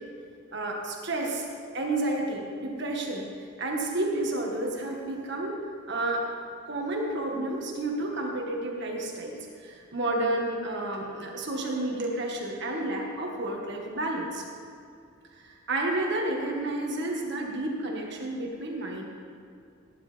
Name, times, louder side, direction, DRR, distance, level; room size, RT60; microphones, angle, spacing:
voice 1, 0.5-1.5 1.7-3.3 3.6-5.6 5.9-6.3 6.7-14.4 15.4-19.0, right 2 dB, 55° right, 0 dB, 1.7 m, -31 dB
18.0 x 10.0 x 3.5 m, 2.4 s
head